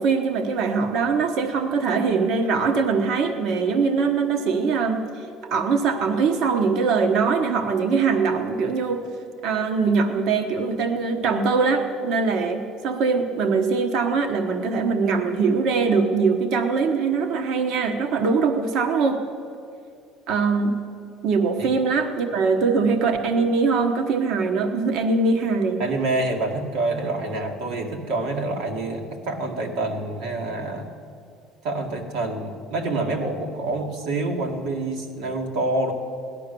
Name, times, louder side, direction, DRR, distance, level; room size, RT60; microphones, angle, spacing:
voice 1, 0.0-5.0 5.5-9.1 9.4-19.2 20.3-20.8 21.2-25.8, right 4 dB, 60° right, 6 dB, 1.2 m, -22 dB
voice 2, 25.8-30.9 31.6-35.9, right 2 dB, 75° right, 2 dB, 2.2 m, -27 dB
17.5 x 11.5 x 6.9 m, 2.4 s
cardioid pair, 150°, 0 cm